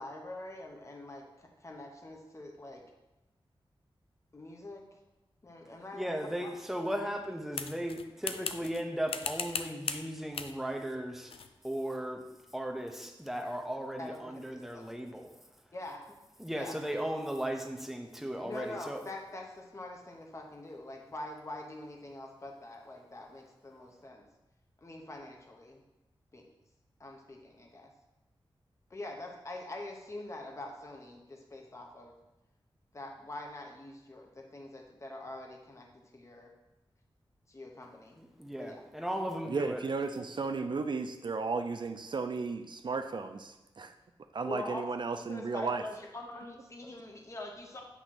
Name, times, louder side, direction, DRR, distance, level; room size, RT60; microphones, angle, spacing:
voice 1, 0.0-2.8 4.3-4.8 5.4-6.1 6.4-6.5 14.0-14.9 15.7-16.0 16.5-16.7 18.4-24.2 24.8-25.8 26.3-26.5 27.0-27.9 28.9-32.2 32.9-36.5 37.5-38.2 38.6-38.8 44.4-44.9 45.2-47.8, left 2 dB, 30° left, 2 dB, 0.9 m, -44 dB
voice 2, 5.9-11.4 11.6-12.3 12.5-15.4 16.4-19.0 38.2-39.8, equal, 5° right, 2 dB, 0.8 m, -36 dB
sound 1, 7.5-8.8 9.1-10.1 10.3-10.6 11.3-11.5, left 5 dB, 80° left, 0.4 m, -37 dB
voice 3, 39.5-43.9 44.3-45.8, right 4 dB, 55° right, 7 dB, 0.4 m, -34 dB
8.2 x 3.0 x 5.9 m, 0.98 s
wide cardioid pair, 105°, 9 cm